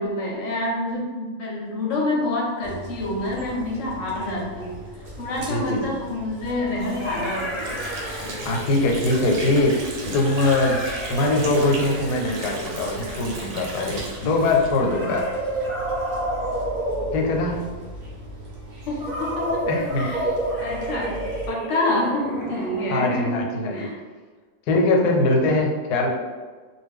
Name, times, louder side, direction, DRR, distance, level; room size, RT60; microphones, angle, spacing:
voice 1, 0.0-4.8 5.2-7.5 18.9-19.7 20.0-20.3 20.6-23.5 23.7-24.0, left 2 dB, 65° left, -2 dB, 0.8 m, -27 dB
sound 1, 2.6-21.5, equal, 55° right, 0.5 m, -40 dB
sound 2, 5.0-5.1 6.5-8.9 10.1-13.6 14.8-17.8 19.0-23.3, right 1 dB, 30° right, 0.8 m, -30 dB
voice 2, 5.5-6.0 8.4-9.8 10.1-15.3 17.1-17.7 19.7-20.1 22.9-23.9 24.7-26.1, left 2 dB, 85° left, 1 dB, 1.1 m, -22 dB
Water / Sink (filling or washing), 6.8-15.3, right 2 dB, 80° right, 1.2 m, -36 dB
2.4 x 2.2 x 3.4 m, 1.4 s
omnidirectional pair, 1.6 m